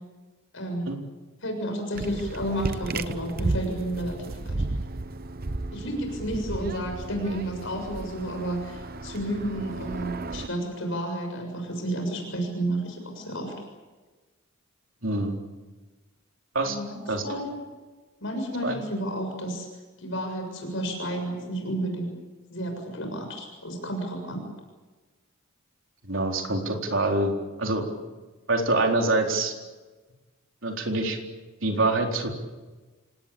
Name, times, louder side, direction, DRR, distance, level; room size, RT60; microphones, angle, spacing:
voice 1, 0.5-0.9 1.4-4.6 5.7-13.5 16.6-17.5 18.2-19.7 20.0-22.1 22.5-24.4, right 1 dB, 65° left, 3 dB, 6.9 m, -31 dB
sound 1, 1.9-10.5, right 2 dB, 45° right, 0.9 m, -34 dB
voice 2, 15.0-15.4 16.5-16.8 17.1-17.2 18.6-18.8 26.0-27.3 27.6-27.8 28.5-29.5 30.6-31.2 31.6-32.3, right 2 dB, 65° right, 2 dB, 4.1 m, -25 dB
27.5 x 19.5 x 8.7 m, 1.3 s
head